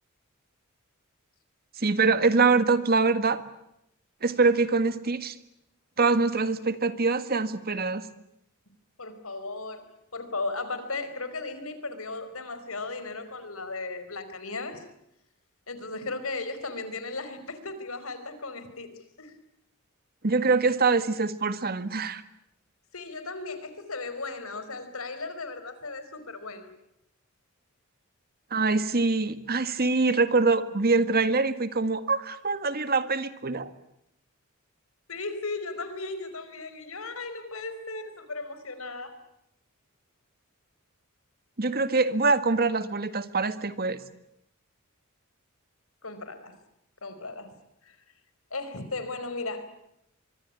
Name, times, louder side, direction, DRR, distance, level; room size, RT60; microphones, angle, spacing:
voice 1, 1.8-3.4 4.2-5.3 6.0-8.0 20.2-22.2 28.5-33.7 41.6-44.0, right 4 dB, 45° right, 12 dB, 1.7 m, -24 dB
voice 2, 9.0-9.9 10.1-14.8 15.7-18.9 19.2-19.3 21.6-21.7 22.9-26.7 35.1-39.2 46.0-46.6 47.0-47.5 47.8-48.0 48.5-49.6, left 3 dB, 80° left, 11 dB, 4.8 m, -36 dB
24.5 x 24.0 x 9.9 m, 0.79 s
head